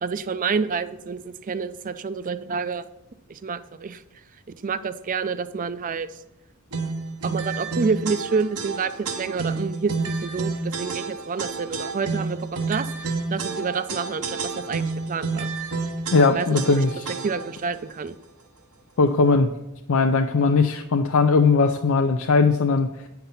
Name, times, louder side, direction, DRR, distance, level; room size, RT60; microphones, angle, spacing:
voice 1, 0.0-2.8 3.3-4.0 4.6-6.1 7.2-12.9 13.3-15.5 16.3-16.8 17.2-18.2, right 5 dB, 35° right, 13 dB, 0.4 m, -28 dB
sound 1, 6.7-17.6, right 4 dB, 90° right, 1.0 m, -30 dB
voice 2, 16.1-17.1 19.0-19.5 19.9-23.1, left 4 dB, 65° left, 5 dB, 0.5 m, -19 dB
9.1 x 5.8 x 5.4 m, 0.91 s
head